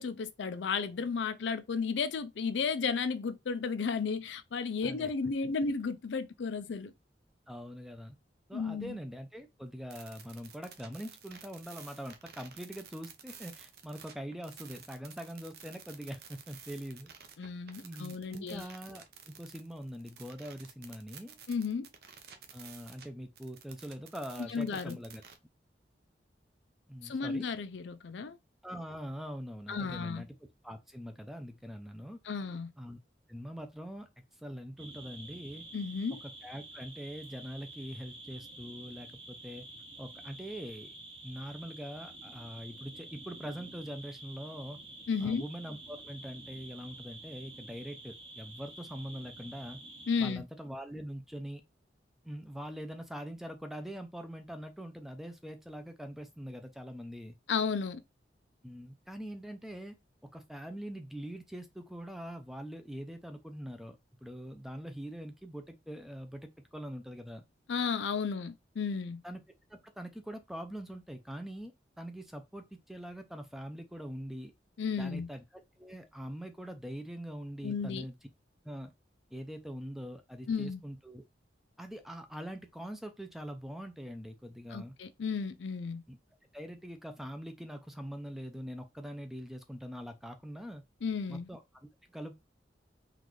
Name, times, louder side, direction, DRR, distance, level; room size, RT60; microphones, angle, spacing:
voice 1, 0.0-6.9 8.5-9.0 17.4-18.7 21.5-21.9 24.5-25.0 27.0-28.4 29.7-30.2 32.3-32.7 35.7-36.2 45.1-45.4 50.1-50.4 57.5-58.0 67.7-69.2 74.8-75.3 77.6-78.0 80.5-80.8 84.7-86.0 91.0-91.5, left 5 dB, 80° left, 0.4 m, -33 dB
voice 2, 7.5-8.2 8.5-17.1 17.8-21.4 22.5-25.2 26.9-27.5 28.6-30.3 30.6-32.2 32.8-33.0 33.3-34.1 34.4-35.6 36.2-39.6 40.0-40.9 41.2-44.8 45.2-49.8 50.2-51.6 52.2-57.4 58.6-60.0 60.2-67.4 69.2-69.4 69.7-74.5 75.0-75.4 75.8-78.2 78.6-78.9 79.3-81.2 81.8-84.9 86.1-86.2 86.5-90.8 91.3-92.3, equal, ahead, 0.4 m, -43 dB
sound 1, 9.9-23.1 23.4-25.4, right 7 dB, 55° right, 0.6 m, -52 dB
sound 2, 34.8-50.3, right 2 dB, 30° right, 0.8 m, -49 dB
3.9 x 2.5 x 3.1 m
head